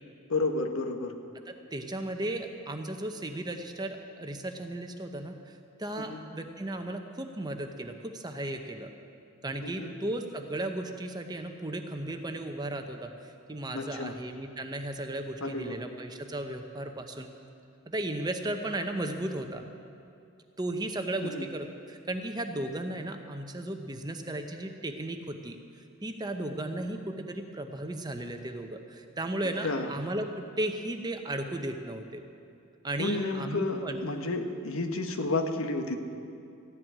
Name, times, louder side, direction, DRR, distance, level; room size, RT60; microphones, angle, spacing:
voice 1, 0.3-1.1 6.0-6.2 9.6-9.9 13.7-14.2 15.4-15.8 21.2-21.5 29.6-29.9 33.0-36.0, left 2 dB, 75° left, 5 dB, 1.2 m, -31 dB
voice 2, 1.5-8.9 9.4-17.3 17.9-19.7 20.6-25.6 26.0-32.2 32.8-34.0, right 1 dB, 20° right, 5 dB, 0.8 m, -35 dB
15.0 x 7.7 x 9.9 m, 2.5 s
head